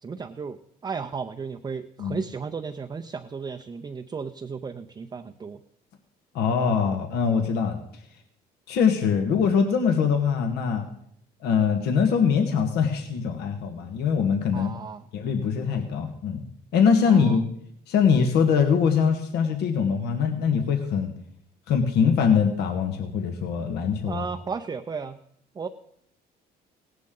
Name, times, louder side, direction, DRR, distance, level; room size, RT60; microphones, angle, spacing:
voice 1, 0.0-0.6 0.8-5.6 14.5-15.1 17.1-17.4 24.1-25.2 25.5-25.7, right 5 dB, 25° right, 5 dB, 0.6 m, -34 dB
voice 2, 6.3-7.8 8.7-10.8 11.4-14.7 15.1-16.4 16.7-17.4 17.9-21.1 21.7-24.2, left 6 dB, 75° left, 5 dB, 1.6 m, -22 dB
17.0 x 11.5 x 3.8 m, 0.68 s
cardioid pair, 110°, 17 cm